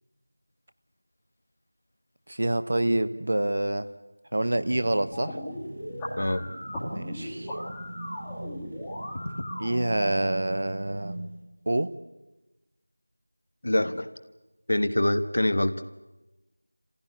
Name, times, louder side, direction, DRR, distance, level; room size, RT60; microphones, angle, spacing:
voice 1, 2.3-3.9 4.3-5.4 6.9-7.5 9.6-11.2 11.7-11.9, right 1 dB, 40° right, 13 dB, 0.9 m, -27 dB
sound 1, 4.6-11.4, right 1 dB, 20° right, 1.9 m, -41 dB
sound 2, 5.1-10.1, left 1 dB, 5° left, 2.0 m, -38 dB
voice 2, 13.6-14.1 14.7-15.8, left 1 dB, 45° left, 12 dB, 1.2 m, -25 dB
26.5 x 16.0 x 9.7 m, 1.1 s
figure-of-eight pair, 175°, 0 cm